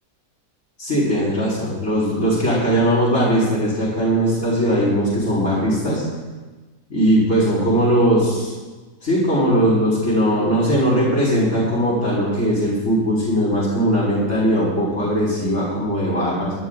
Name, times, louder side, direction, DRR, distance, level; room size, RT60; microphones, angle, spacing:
voice 1, 0.8-6.0 6.9-8.5 9.0-16.5, equal, 55° left, -9 dB, 4.7 m, -19 dB
25.5 x 11.5 x 2.4 m, 1.3 s
omnidirectional pair, 1.6 m